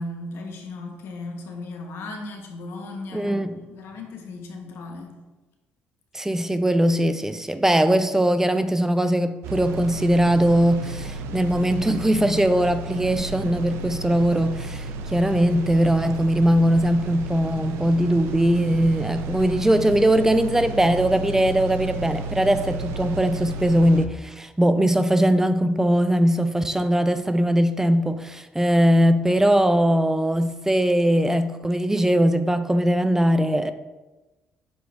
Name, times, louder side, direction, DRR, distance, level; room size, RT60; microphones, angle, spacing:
voice 1, 0.0-5.2, left 2 dB, 75° left, 1.0 m, -36 dB
voice 2, 3.1-3.6 6.1-33.7, right 1 dB, 10° right, 0.4 m, -20 dB
fan blowing, 9.4-24.1, right 3 dB, 85° right, 0.5 m, -33 dB
7.5 x 4.0 x 3.5 m
cardioid pair, 80°, 4 cm